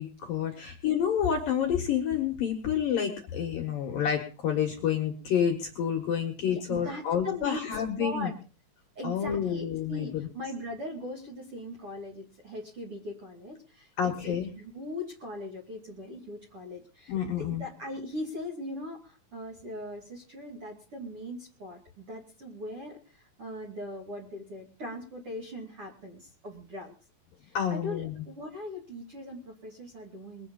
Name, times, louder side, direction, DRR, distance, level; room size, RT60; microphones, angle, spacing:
voice 1, 0.0-8.3 9.0-10.3 14.0-14.5 17.1-17.6 27.5-28.2, left 8 dB, 60° left, 2 dB, 2.6 m, -29 dB
voice 2, 6.5-8.3 8.9-26.9 27.4-30.5, left 1 dB, 40° right, 0 dB, 2.5 m, -40 dB
22.5 x 8.5 x 5.5 m, 0.37 s
omnidirectional pair, 5.8 m